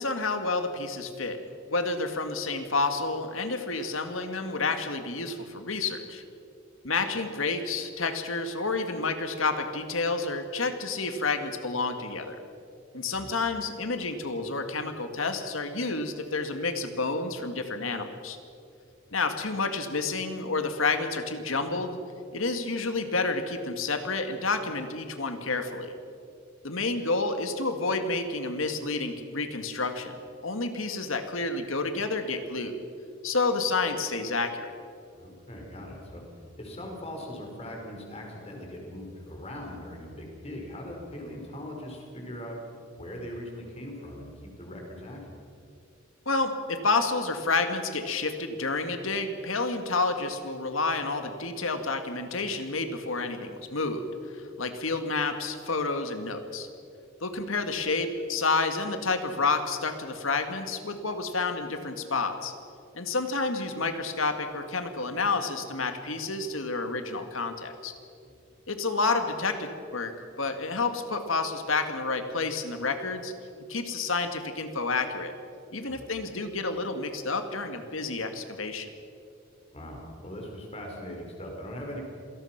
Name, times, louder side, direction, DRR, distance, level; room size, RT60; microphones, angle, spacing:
voice 1, 0.0-1.4 1.7-6.2 6.8-12.4 12.9-18.4 19.1-22.0 22.3-25.9 26.6-30.2 30.4-32.8 33.2-34.8 46.3-54.0 54.3-56.7 57.2-62.5 62.9-67.9 68.7-73.3 73.7-75.3 75.7-78.9, left 3 dB, 80° left, 7 dB, 2.0 m, -29 dB
voice 2, 35.1-36.2 36.6-42.6 43.0-45.4 68.2-68.4 75.9-76.1 79.7-82.0, left 1 dB, 30° left, 1 dB, 4.9 m, -40 dB
27.0 x 18.0 x 5.9 m, 2.5 s
head